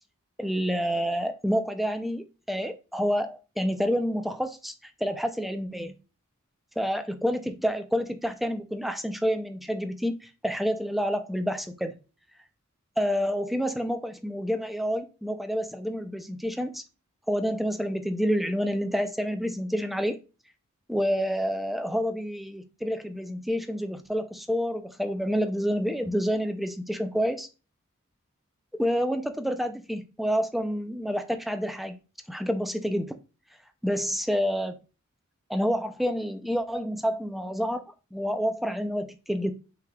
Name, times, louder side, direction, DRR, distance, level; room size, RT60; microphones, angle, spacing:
voice 1, 0.4-5.9 6.8-10.2 10.4-11.9 13.0-16.8 17.3-20.2 20.9-27.5 28.8-32.0 32.3-33.2 33.8-34.8 35.5-37.8 38.1-39.5, equal, ahead, 0.4 m, -28 dB
5.8 x 3.4 x 2.2 m
head